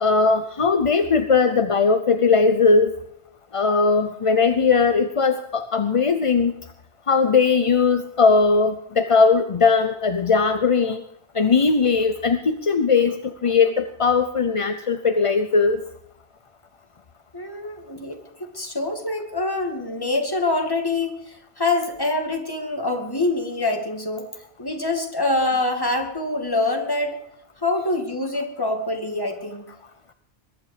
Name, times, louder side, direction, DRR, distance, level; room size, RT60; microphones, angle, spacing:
voice 1, 0.0-2.9 3.5-6.6 7.1-11.0 11.3-15.8, left 4 dB, 35° left, 9 dB, 0.6 m, -19 dB
voice 2, 17.3-24.3 24.6-27.2 27.6-29.6, left 2 dB, 20° left, 3 dB, 2.3 m, -25 dB
21.5 x 11.0 x 5.0 m, 0.74 s
omnidirectional pair, 1.2 m